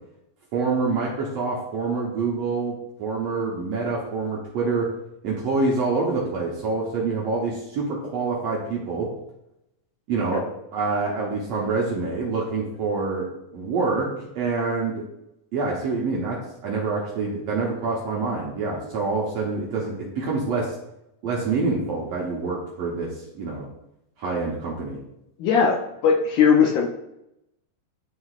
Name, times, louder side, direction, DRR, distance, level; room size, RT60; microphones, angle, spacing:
voice 1, 0.5-4.9 5.2-9.1 10.1-10.4 10.7-13.3 13.5-15.0 15.5-20.7 21.2-23.1 23.4-23.7 24.2-25.0, right 4 dB, 70° right, -3 dB, 1.6 m, -26 dB
voice 2, 25.4-25.8 26.0-26.9, left 6 dB, 75° left, -2 dB, 1.9 m, -18 dB
11.5 x 3.8 x 2.4 m, 0.83 s
omnidirectional pair, 4.2 m